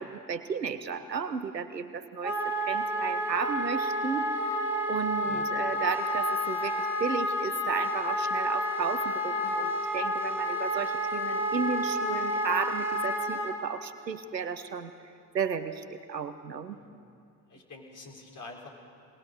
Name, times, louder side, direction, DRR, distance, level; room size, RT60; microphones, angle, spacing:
voice 1, 0.0-2.4 2.6-4.3 4.9-14.9 15.3-16.8, right 6 dB, 85° right, 12 dB, 0.8 m, -33 dB
Wind instrument woodwind instrument, 2.2-13.5, equal, 5° right, 2.8 m, -30 dB
voice 2, 17.5-18.7, left 3 dB, 40° left, 0 dB, 4.5 m, -46 dB
22.0 x 19.0 x 6.7 m, 2.4 s
figure-of-eight pair, 50°, 49 cm